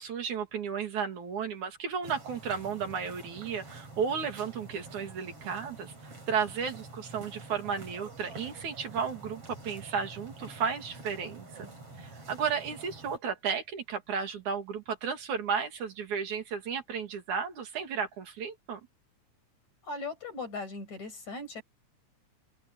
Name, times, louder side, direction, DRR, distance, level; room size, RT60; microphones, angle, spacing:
voice 1, 0.0-5.9 6.3-11.7 12.0-18.8, right 6 dB, 75° right, 4.0 m, -33 dB
sound 1, 2.0-13.2, right 2 dB, 50° right, 8.0 m, -47 dB
voice 2, 19.8-21.6, left 3 dB, 65° left, 7.9 m, -38 dB
open air
omnidirectional pair, 3.5 m